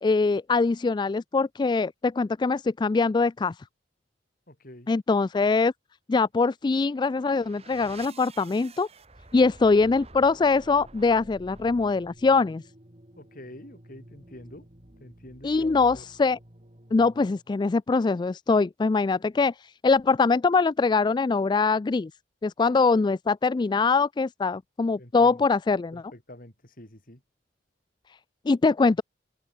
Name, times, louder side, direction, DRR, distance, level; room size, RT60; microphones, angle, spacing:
voice 1, 0.0-3.6 4.9-5.7 6.1-8.9 9.3-12.6 15.4-16.4 16.9-22.1 22.4-26.0 28.5-29.0, left 4 dB, 25° left, 0.3 m, -23 dB
voice 2, 4.5-4.9 13.2-14.7 15.0-16.1 25.0-25.5 25.9-27.2, left 1 dB, 50° left, 5.4 m, -47 dB
sound 1, 6.8-17.5, right 2 dB, 35° right, 2.8 m, -50 dB
head